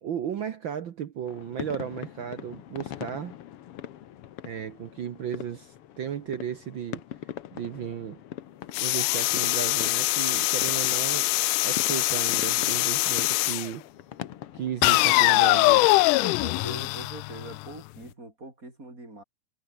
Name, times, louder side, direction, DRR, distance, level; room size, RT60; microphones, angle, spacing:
voice 1, 0.0-3.4 4.4-7.0 7.5-8.2 8.8-11.3 11.6-13.8 14.5-15.9, right 9 dB, 80° right, 1.0 m, -34 dB
sound 1, 1.3-15.0, left 11 dB, 65° left, 1.6 m, -42 dB
sound 2, 8.7-13.7 14.8-17.7, left 22 dB, 80° left, 2.0 m, -23 dB
voice 2, 16.2-19.2, right 2 dB, 25° right, 8.3 m, -42 dB
omnidirectional pair, 3.8 m